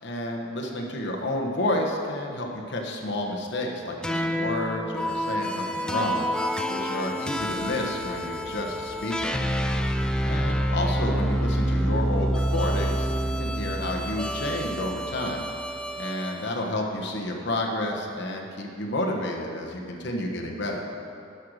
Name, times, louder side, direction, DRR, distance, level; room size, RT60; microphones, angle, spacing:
voice 1, 0.0-6.3 6.7-9.7 10.2-13.1 13.4-15.5 16.0-20.8, left 1 dB, 65° left, 0 dB, 1.2 m, -30 dB
sound 1, 3.9-13.7, equal, 80° right, 1.6 m, -47 dB
sound 2, 4.0-16.5, equal, 5° left, 0.4 m, -28 dB
11.0 x 5.7 x 6.5 m, 2.5 s
head